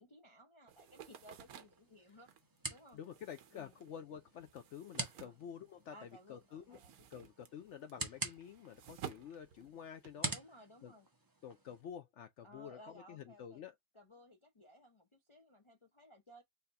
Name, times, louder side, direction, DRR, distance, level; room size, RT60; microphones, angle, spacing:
voice 1, 0.0-2.3 2.7-3.0 3.5-3.7 5.2-5.4 5.9-7.2 10.3-11.1 12.4-13.6 13.9-16.4, equal, 35° left, 0.5 m, -59 dB
sound 1, 0.7-6.1 6.4-10.3, right 9 dB, 75° right, 1.2 m, -54 dB
sound 2, 0.9-11.8, right 2 dB, 20° right, 0.6 m, -48 dB
voice 2, 2.9-6.8 7.1-10.3 10.8-10.9 11.4-13.7, left 8 dB, 65° left, 0.7 m, -49 dB
4.0 x 2.8 x 3.8 m
omnidirectional pair, 1.6 m